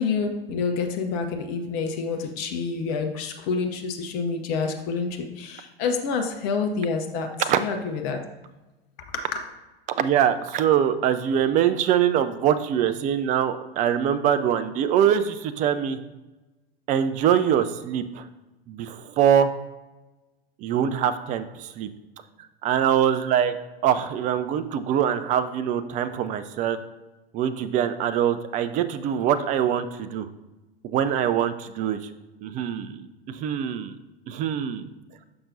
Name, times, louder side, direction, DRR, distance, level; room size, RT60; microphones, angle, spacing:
voice 1, 0.0-7.3 7.6-8.2 9.1-9.4, left 5 dB, 45° left, 4 dB, 0.8 m, -28 dB
voice 2, 10.0-16.0 16.9-18.3 18.7-19.5 20.6-21.9 22.6-23.6 23.8-26.8 27.3-30.3 30.8-32.0 32.4-33.9 34.3-34.8, right 9 dB, 25° right, 11 dB, 0.4 m, -23 dB
6.8 x 5.7 x 2.6 m, 1.1 s
figure-of-eight pair, 90°, 31 cm